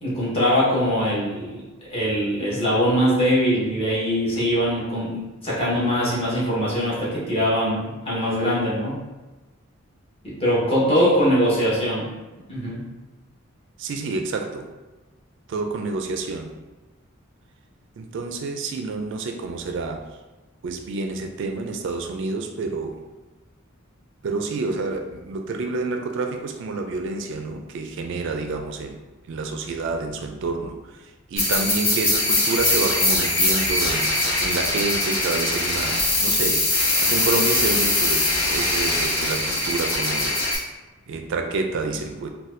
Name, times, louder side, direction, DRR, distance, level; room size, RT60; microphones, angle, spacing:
voice 1, 0.0-1.6 1.9-9.0 10.2-12.1 12.5-12.9, equal, 30° left, -8 dB, 1.1 m, -22 dB
voice 2, 13.8-14.7 15.5-16.5 18.0-20.0 20.6-23.0 24.2-29.0 29.3-30.8 31.3-34.1 34.4-36.6 37.0-40.4 41.1-42.3, right 3 dB, 60° right, 4 dB, 0.3 m, -28 dB
sound 1, 31.4-40.6, left 2 dB, 65° left, 0.9 m, -22 dB
4.1 x 2.2 x 2.5 m, 1.2 s
head